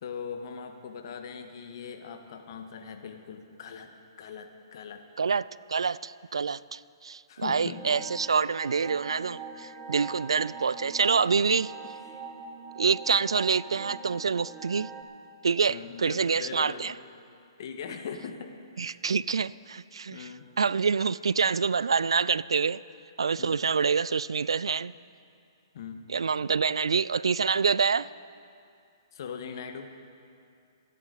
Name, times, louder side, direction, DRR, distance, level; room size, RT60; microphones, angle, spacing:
voice 1, 0.0-5.0 7.3-7.8 10.3-10.4 11.5-12.2 15.7-16.9 17.6-19.0 20.1-20.5 23.4-23.6 25.7-26.0 29.1-29.9, left 6 dB, 55° left, 1.5 m, -41 dB
voice 2, 5.2-11.7 12.8-14.9 15.4-16.9 18.8-20.3 20.6-22.8 23.2-24.9 26.1-28.1, right 5 dB, 85° right, 0.3 m, -26 dB
sound 1, 7.7-15.0, right 4 dB, 15° right, 1.8 m, -43 dB
26.5 x 10.0 x 4.1 m
hypercardioid pair, 135°, 3 cm